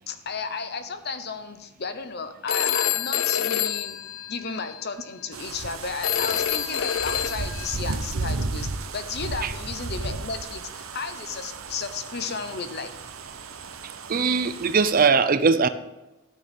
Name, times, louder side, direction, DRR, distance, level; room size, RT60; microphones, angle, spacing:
voice 1, 0.1-4.0 4.3-12.9, left 5 dB, 50° left, 0.9 m, -33 dB
Telephone, 2.5-4.8 6.0-7.8, left 10 dB, 75° left, 0.5 m, -27 dB
sound 1, 5.3-15.1, right 3 dB, 80° right, 0.9 m, -34 dB
voice 2, 13.8-15.7, right 5 dB, 45° right, 0.5 m, -21 dB
12.5 x 6.6 x 5.3 m
head